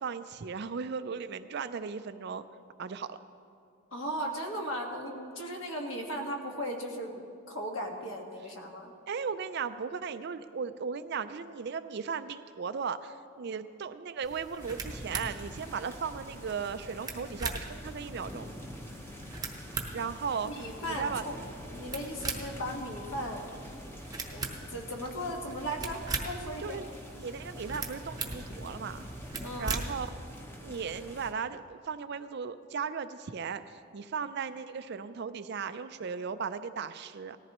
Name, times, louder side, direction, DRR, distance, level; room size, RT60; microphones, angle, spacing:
voice 1, 0.0-2.5 2.8-3.2 9.1-18.5 19.9-20.5 20.9-21.3 26.6-29.1 29.6-30.1 30.6-37.4, right 6 dB, 50° right, 12 dB, 0.4 m, -36 dB
voice 2, 3.9-7.2 7.5-8.9 20.4-21.4 21.7-23.4 24.3-26.8 29.4-29.8, equal, 60° left, 1 dB, 1.6 m, -37 dB
sound 1, 14.2-30.1, right 3 dB, 15° right, 0.9 m, -41 dB
sound 2, 14.6-31.3, equal, 10° left, 0.8 m, -45 dB
18.5 x 14.0 x 3.0 m, 2.4 s
head